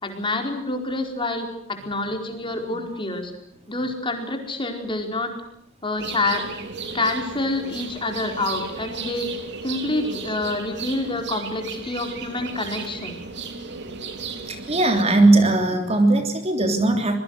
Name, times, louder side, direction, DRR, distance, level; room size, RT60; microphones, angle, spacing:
voice 1, 0.0-3.3 3.7-5.3 5.8-6.4 6.9-9.3 9.6-13.2, left 2 dB, 25° left, 4 dB, 4.6 m, -27 dB
sound 1, 6.0-15.0, right 4 dB, 60° right, 3.2 m, -35 dB
voice 2, 14.5-17.2, right 2 dB, 30° right, 5 dB, 3.3 m, -19 dB
26.0 x 22.0 x 6.5 m, 0.76 s
head